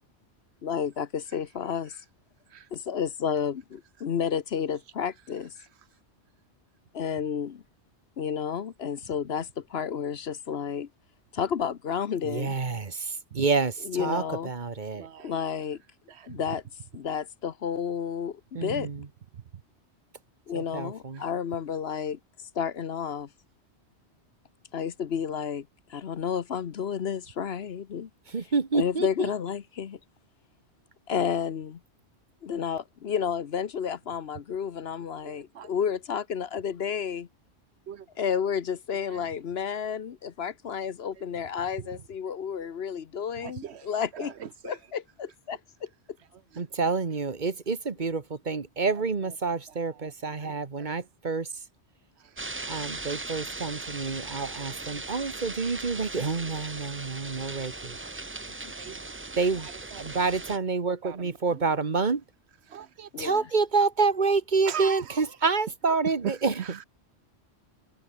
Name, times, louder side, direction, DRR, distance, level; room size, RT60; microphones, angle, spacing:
voice 1, 0.6-1.9 2.7-5.5 6.9-7.6 8.2-10.9 11.3-12.6 13.8-14.5 15.2-15.8 16.3-16.6 16.9-18.9 20.5-22.2 22.5-23.3 24.7-28.1 28.7-30.0 31.1-31.8 32.4-37.3 38.2-44.3 44.6-45.0 45.5-45.9 58.6-58.7 63.1-63.5, left 7 dB, 65° left, 1.1 m, -31 dB
voice 2, 12.2-15.1 18.5-19.0 20.5-21.2 28.3-29.3 46.6-51.5 52.7-57.9 59.4-59.7 60.0-62.2 63.2-66.5, right 4 dB, 45° right, 1.4 m, -28 dB
voice 3, 14.9-15.4 16.1-16.4 18.7-18.8 35.2-35.7 37.9-38.1 41.8-41.9 42.6-42.7 43.4-43.9 44.1-44.8 49.2-49.3 49.9-50.1 50.4-50.5 50.8-51.0 58.8-59.0 59.6-60.2 61.0-61.6 62.7-63.1 64.7-65.2 66.2-66.8, right 9 dB, 70° right, 1.1 m, -39 dB
sound 1, 52.4-60.6, right 3 dB, 20° right, 0.4 m, -38 dB
omnidirectional pair, 1.2 m